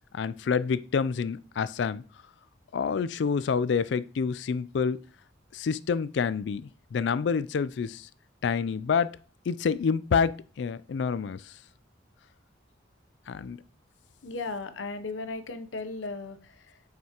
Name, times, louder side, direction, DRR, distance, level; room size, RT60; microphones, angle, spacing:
voice 1, 0.1-2.0 2.7-5.0 5.5-8.1 8.4-9.2 9.5-11.5 13.3-13.6, left 6 dB, 70° left, 0.3 m, -28 dB
voice 2, 14.2-16.8, left 3 dB, 85° left, 0.7 m, -36 dB
7.5 x 5.9 x 2.9 m
head